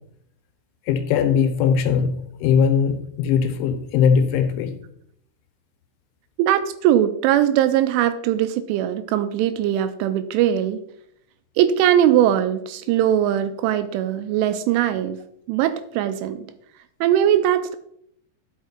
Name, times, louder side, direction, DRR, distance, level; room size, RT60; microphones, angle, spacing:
voice 1, 0.9-4.7, left 7 dB, 80° left, 6 dB, 3.3 m, -20 dB
voice 2, 6.4-10.8 11.6-15.2 15.5-16.5 17.0-17.8, right 11 dB, 85° right, 11 dB, 2.9 m, -20 dB
10.5 x 6.0 x 4.4 m, 0.71 s
omnidirectional pair, 5.7 m